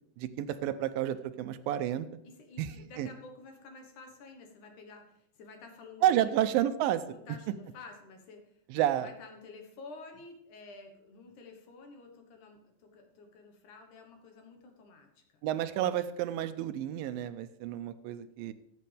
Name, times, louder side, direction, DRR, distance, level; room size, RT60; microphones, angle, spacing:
voice 1, 0.2-2.1 2.6-3.1 6.0-7.2 8.7-9.1 15.4-18.5, right 12 dB, 80° right, 12 dB, 2.3 m, -30 dB
voice 2, 2.2-6.3 7.1-8.6 8.9-15.2, left 3 dB, 65° left, 4 dB, 2.6 m, -51 dB
15.5 x 8.4 x 3.4 m, 0.75 s
omnidirectional pair, 4.1 m